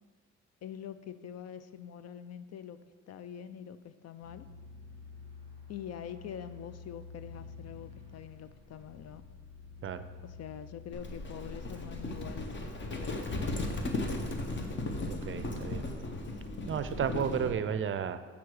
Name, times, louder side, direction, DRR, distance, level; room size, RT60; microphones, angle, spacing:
voice 1, 0.6-2.8 3.1-4.5 5.7-9.2 10.2-12.6 12.8-13.6, left 9 dB, 55° left, 0.5 m, -45 dB
sound 1, 4.2-12.3, left 5 dB, 85° left, 2.0 m, -49 dB
Livestock farm animals working animals, 10.9-17.6, left 2 dB, 40° left, 1.0 m, -36 dB
voice 2, 15.0-15.9 16.7-18.2, right 8 dB, 45° right, 0.5 m, -33 dB
7.1 x 5.9 x 4.8 m
cardioid pair, 90°, 30 cm